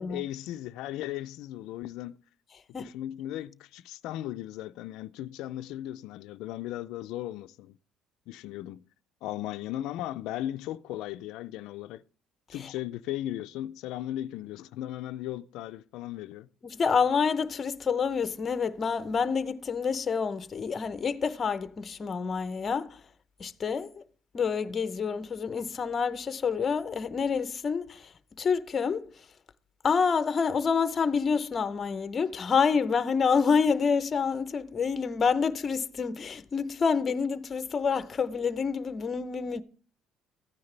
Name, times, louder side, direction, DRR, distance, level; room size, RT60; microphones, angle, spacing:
voice 1, 0.0-2.1 2.8-7.8 8.3-8.8 9.2-12.0 12.5-16.5, left 13 dB, 75° left, 0.4 m, -37 dB
voice 2, 16.6-23.0 23.4-24.0 24.3-28.1 28.4-29.1 29.8-39.6, left 5 dB, 30° left, 0.7 m, -28 dB
14.5 x 9.6 x 3.3 m
cardioid pair, 135°, 0 cm